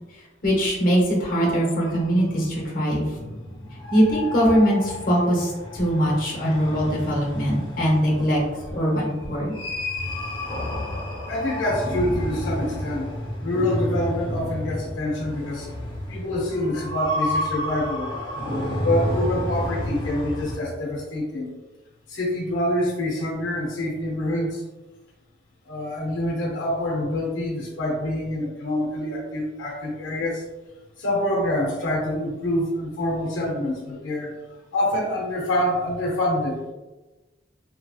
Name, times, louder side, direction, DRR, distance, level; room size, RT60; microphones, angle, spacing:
voice 1, 0.4-3.1 3.9-8.4 8.7-9.5, equal, 45° left, -3 dB, 0.9 m, -21 dB
sound 1, 1.8-20.6, left 1 dB, 25° left, 0.5 m, -31 dB
voice 2, 11.3-13.1 13.4-15.7 16.1-18.1 18.8-21.6 22.1-24.6 25.7-30.4 31.0-34.3 34.7-36.7, left 1 dB, 80° left, -2 dB, 0.6 m, -26 dB
2.8 x 2.7 x 2.3 m, 1.1 s
head